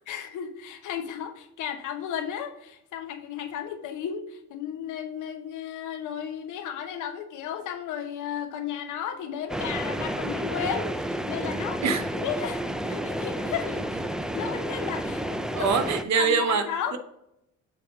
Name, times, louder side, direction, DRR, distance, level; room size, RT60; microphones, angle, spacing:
voice 1, 0.1-14.0 14.3-15.7 16.1-17.0, left 8 dB, 80° left, 1.0 m, -34 dB
sound 1, 9.5-16.0, right 1 dB, ahead, 0.4 m, -31 dB
voice 2, 15.5-16.7 16.9-17.0, right 6 dB, 65° right, 0.9 m, -24 dB
6.9 x 2.9 x 4.7 m
cardioid pair, 90°, 30 cm